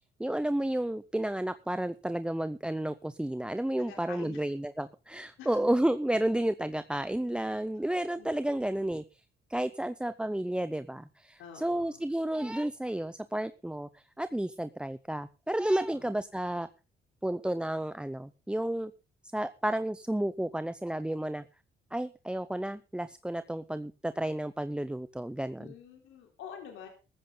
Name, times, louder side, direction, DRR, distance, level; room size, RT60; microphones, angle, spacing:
voice 1, 0.2-9.2 9.5-16.7 17.2-18.9 19.3-21.4 21.9-25.7, right 1 dB, 5° right, 12 dB, 0.6 m, -31 dB
voice 2, 3.9-4.5 5.4-5.6 8.2-8.3 11.4-12.0 15.9-16.1 25.6-26.9, left 8 dB, 90° left, 2 dB, 3.9 m, -47 dB
14.5 x 14.0 x 3.9 m, 0.32 s
cardioid pair, 90°, 20 cm